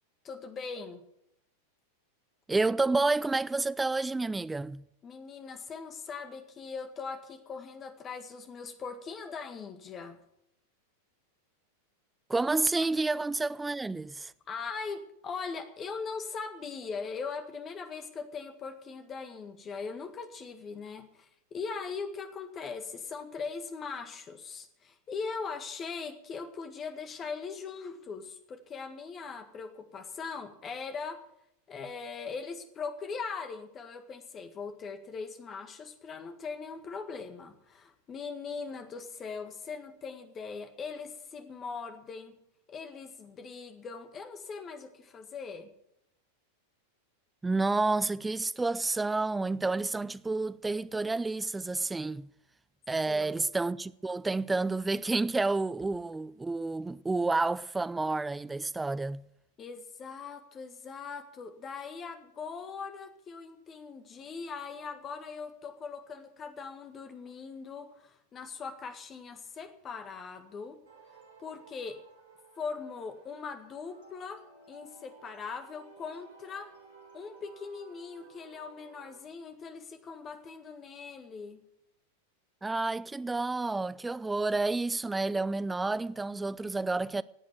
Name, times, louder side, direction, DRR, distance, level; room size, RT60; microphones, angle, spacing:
voice 1, 0.2-1.0 5.0-10.2 14.5-31.2 31.7-42.4 42.7-45.7 53.1-53.4 59.6-70.8 71.4-72.0 72.6-74.4 74.7-76.7 77.1-81.6, left 5 dB, 25° left, 1.8 m, -40 dB
voice 2, 2.5-4.8 12.3-14.3 47.4-52.3 52.9-59.2 82.6-87.2, right 3 dB, 10° right, 0.5 m, -30 dB
sound 1, 70.9-79.2, right 4 dB, 60° right, 3.0 m, -56 dB
16.0 x 8.6 x 7.9 m
figure-of-eight pair, 90°, 0 cm